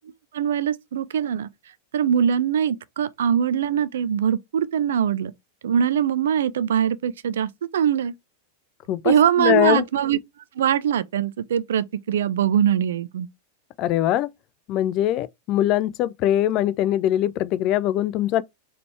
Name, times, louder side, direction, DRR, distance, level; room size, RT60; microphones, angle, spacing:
voice 1, 0.3-1.5 1.9-5.3 5.6-8.1 9.0-10.2 10.6-13.3, right 8 dB, 60° right, 0.4 m, -22 dB
voice 2, 8.9-9.8 13.8-14.3 14.7-18.4, left 12 dB, 40° left, 0.3 m, -22 dB
3.9 x 3.2 x 3.1 m
figure-of-eight pair, 90°, 0 cm